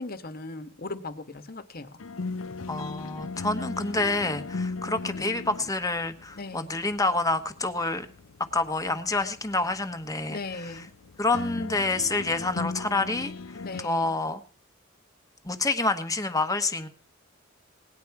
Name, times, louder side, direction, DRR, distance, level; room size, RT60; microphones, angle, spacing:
voice 1, 0.0-2.0 6.3-6.7 10.3-10.9 13.6-14.1, left 3 dB, 50° left, 9 dB, 1.4 m, -38 dB
sound 1, 2.0-13.8, left 3 dB, 90° left, 0.7 m, -38 dB
voice 2, 2.7-8.1 8.5-10.8 11.2-14.4 15.4-16.9, left 2 dB, 15° left, 8 dB, 1.2 m, -28 dB
18.5 x 10.5 x 4.8 m, 0.38 s
head